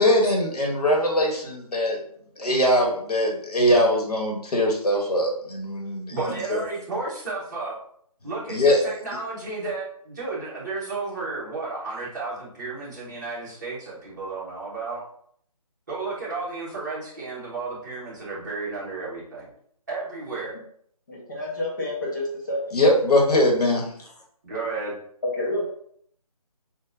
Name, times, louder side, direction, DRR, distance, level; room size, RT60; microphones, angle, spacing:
voice 1, 0.0-2.0 2.4-6.1 6.5-6.6 8.5-8.8 22.7-23.9, left 1 dB, 80° left, -1 dB, 1.5 m, -21 dB
voice 2, 6.1-7.8 8.2-15.0 15.9-19.5 19.9-20.5 24.4-24.9, right 3 dB, 30° right, -8 dB, 1.4 m, -32 dB
voice 3, 21.1-22.7 25.2-25.6, left 1 dB, 30° left, -3 dB, 1.0 m, -29 dB
6.0 x 2.6 x 2.5 m, 0.65 s
figure-of-eight pair, 170°, 20 cm